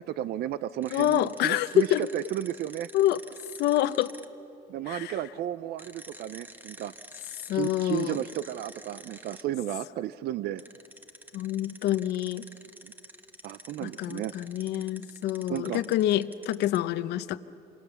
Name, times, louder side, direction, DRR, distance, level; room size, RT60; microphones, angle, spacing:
voice 1, 0.0-2.9 4.7-6.9 7.5-10.6 12.8-12.9 13.4-14.3 15.5-15.8, right 12 dB, 70° right, 15 dB, 0.6 m, -33 dB
sound 1, 0.8-4.3 5.8-9.4 10.6-16.8, right 1 dB, 10° right, 1.2 m, -48 dB
voice 2, 0.9-2.1 2.9-3.2 3.6-4.1 4.9-5.1 7.5-8.2 11.3-12.5 13.8-17.4, left 13 dB, 80° left, 13 dB, 0.8 m, -27 dB
27.0 x 26.5 x 7.0 m, 2.7 s
cardioid pair, 110°, 17 cm